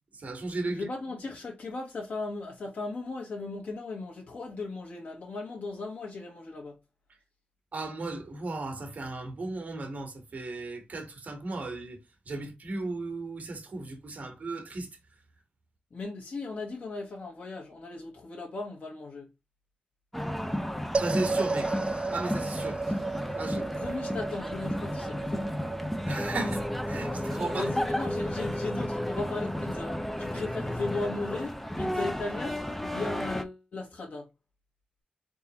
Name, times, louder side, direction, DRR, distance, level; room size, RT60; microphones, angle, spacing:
voice 1, 0.2-0.9 7.7-12.0 12.3-14.9 21.0-21.7 22.1-22.8 23.4-23.6 26.0-27.7, right 2 dB, 60° right, 1.5 m, -35 dB
voice 2, 0.7-6.8 15.9-19.3 22.9-23.0 23.5-25.5 27.5-34.3, left 3 dB, 75° left, 1.2 m, -37 dB
sound 1, 20.1-33.4, left 1 dB, 5° left, 0.6 m, -34 dB
sound 2, 20.9-31.4, right 3 dB, 40° right, 0.4 m, -36 dB
sound 3, 26.1-31.4, left 1 dB, 25° left, 1.3 m, -35 dB
4.0 x 3.8 x 2.9 m
wide cardioid pair, 110°, 3 cm